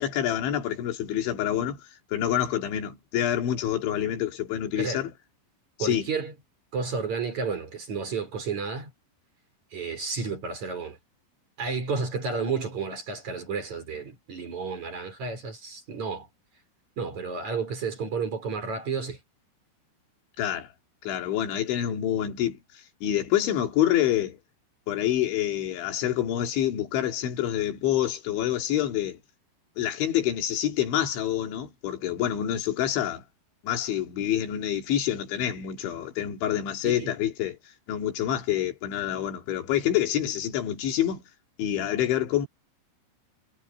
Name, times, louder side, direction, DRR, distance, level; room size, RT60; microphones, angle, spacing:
voice 1, 0.0-1.8 2.1-5.1 5.8-6.1 20.4-20.7 21.0-22.6 23.0-24.4 24.9-29.2 29.8-33.2 33.6-37.6 37.9-41.2 41.6-42.5, left 11 dB, 70° left, 4.6 m, -27 dB
voice 2, 5.8-6.3 6.7-8.9 9.7-11.0 11.6-16.3 17.0-19.2 36.8-37.1, right 5 dB, 35° right, 5.5 m, -31 dB
omnidirectional pair, 5.7 m